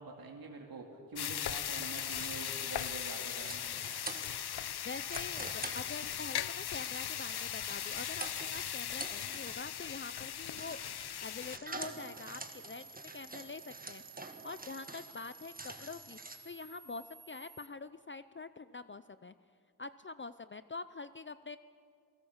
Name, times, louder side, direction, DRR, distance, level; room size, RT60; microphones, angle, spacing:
voice 1, 0.0-3.6, right 3 dB, 65° right, 0 dB, 2.3 m, -46 dB
sound 1, 1.2-11.6, left 10 dB, 85° left, 0.7 m, -38 dB
sound 2, 1.9-16.4, right 2 dB, 25° right, 1.7 m, -48 dB
voice 2, 4.8-10.8 11.2-14.0 14.4-19.3 19.8-21.6, left 4 dB, 30° left, 13 dB, 0.5 m, -45 dB
sound 3, 11.7-17.7, right 4 dB, 40° right, 1.4 m, -55 dB
28.0 x 18.5 x 7.3 m, 2.3 s
wide cardioid pair, 140°, 38 cm